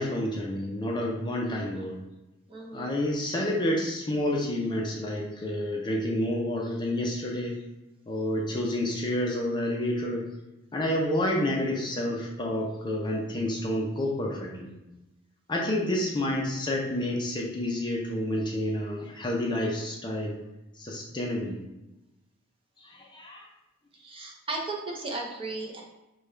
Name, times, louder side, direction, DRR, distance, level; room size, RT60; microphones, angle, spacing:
voice 1, 0.0-2.0 2.7-7.6 8.1-10.3 10.7-14.7 15.5-20.4 20.7-21.6 22.8-23.5, left 1 dB, 20° left, -1 dB, 0.5 m, -29 dB
voice 2, 2.5-3.0 8.4-8.5 23.9-25.8, right 2 dB, 25° right, -2 dB, 0.6 m, -36 dB
5.1 x 2.3 x 3.2 m, 0.99 s
head